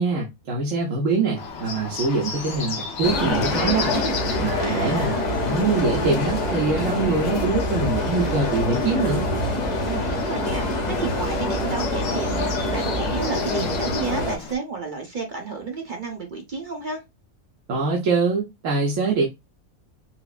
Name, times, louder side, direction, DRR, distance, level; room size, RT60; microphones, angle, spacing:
voice 1, 0.0-3.9 4.4-9.2 17.7-19.3, right 3 dB, 65° right, 1.2 m, -24 dB
Bird, 1.3-14.6, left 5 dB, 55° left, 1.1 m, -35 dB
sound 1, 3.0-14.4, left 2 dB, 40° left, 0.7 m, -25 dB
voice 2, 4.6-5.2 9.8-17.0, right 4 dB, 40° right, 1.0 m, -31 dB
5.9 x 2.0 x 2.3 m
omnidirectional pair, 1.5 m